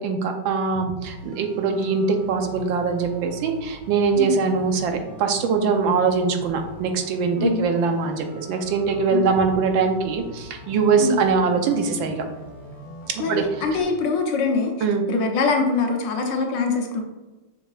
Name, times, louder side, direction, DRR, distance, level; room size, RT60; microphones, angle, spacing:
voice 1, 0.0-12.2 13.1-13.6 14.8-15.1, right 5 dB, 80° right, 5 dB, 1.5 m, -22 dB
sound 1, 1.0-13.8, equal, 45° left, 1.6 m, -42 dB
voice 2, 7.3-7.7 9.1-9.3 11.0-11.2 13.2-14.7 15.1-17.0, left 4 dB, 70° left, 2 dB, 1.6 m, -23 dB
6.5 x 6.3 x 2.4 m, 1.1 s
omnidirectional pair, 2.1 m